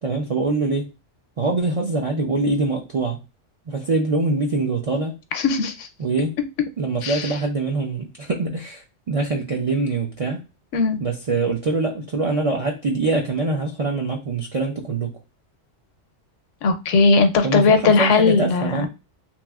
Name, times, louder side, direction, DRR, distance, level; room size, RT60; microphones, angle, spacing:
voice 1, 0.0-0.9 1.4-3.2 3.7-5.2 6.0-6.4 6.8-10.4 11.0-15.2 17.4-18.9, right 3 dB, 60° right, 0.3 m, -24 dB
voice 2, 5.3-5.9 7.0-7.2 10.7-11.0 16.6-18.9, left 4 dB, 85° left, 0.9 m, -18 dB
3.0 x 2.9 x 2.3 m
omnidirectional pair, 1.3 m